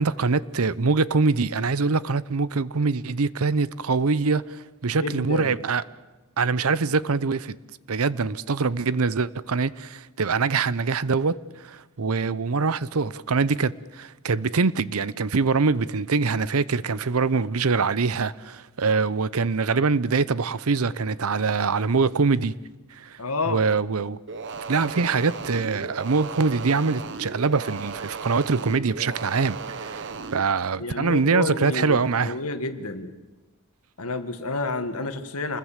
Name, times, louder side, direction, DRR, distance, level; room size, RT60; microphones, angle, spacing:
voice 1, 0.0-5.8 6.4-7.5 7.9-22.5 22.9-23.2 23.5-24.2 24.7-32.4, right 4 dB, 75° right, 0.7 m, -24 dB
voice 2, 4.9-5.5 23.2-23.6 30.8-33.1 34.0-35.6, left 3 dB, 75° left, 1.9 m, -30 dB
sound 1, 24.3-30.4, right 4 dB, 55° right, 1.0 m, -36 dB
27.5 x 20.5 x 7.5 m
head